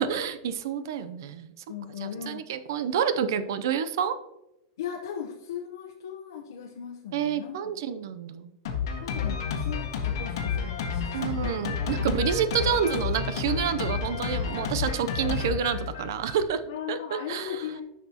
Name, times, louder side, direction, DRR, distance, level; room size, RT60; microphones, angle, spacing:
voice 1, 0.0-1.5 2.0-4.2 7.1-8.5 11.1-16.6 16.9-17.6, right 8 dB, 65° right, 12 dB, 0.6 m, -28 dB
voice 2, 1.7-2.5 4.8-7.8 9.0-11.6 16.7-17.8, left 8 dB, 90° left, 0 dB, 0.8 m, -38 dB
Drum kit, 8.7-16.5, left 6 dB, 70° left, 1.4 m, -30 dB
9.9 x 5.8 x 2.9 m, 0.89 s
supercardioid pair, 175°, 2 cm